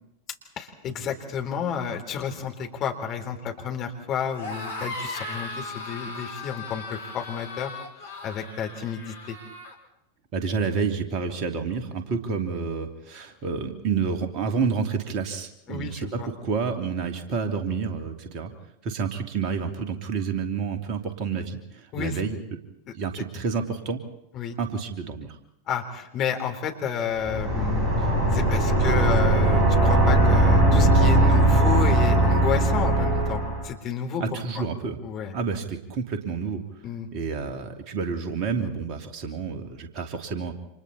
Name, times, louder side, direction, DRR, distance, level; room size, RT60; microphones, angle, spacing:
voice 1, 0.6-7.7 8.0-9.4 15.7-16.3 21.9-22.2 24.3-24.6 25.7-27.9 28.3-34.6 35.0-35.4 36.8-37.1, left 7 dB, 35° left, 3 dB, 3.8 m, -31 dB
sound 1, 4.3-9.8, left 2 dB, 70° left, 4.3 m, -37 dB
voice 2, 10.3-18.5 18.8-22.4 22.9-24.0 24.6-25.4 34.2-35.0 35.3-36.6 37.1-40.5, right 5 dB, 40° right, 5 dB, 2.8 m, -29 dB
sound 2, 27.2-33.7, right 2 dB, 15° right, 7.4 m, -19 dB
30.0 x 27.0 x 4.3 m, 0.80 s
figure-of-eight pair, 90°, 0 cm